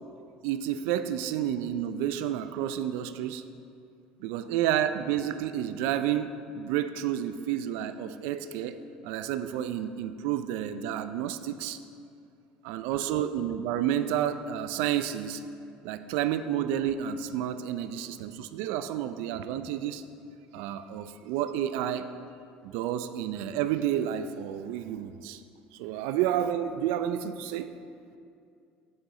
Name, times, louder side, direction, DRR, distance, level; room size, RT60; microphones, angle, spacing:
voice 1, 0.4-3.4 4.2-11.8 12.6-15.4 15.8-20.0 20.5-22.1 22.6-25.4 25.8-27.7, right 10 dB, 80° right, 11 dB, 0.4 m, -30 dB
8.7 x 6.4 x 4.1 m, 2.5 s
cardioid pair, 135°, 3 cm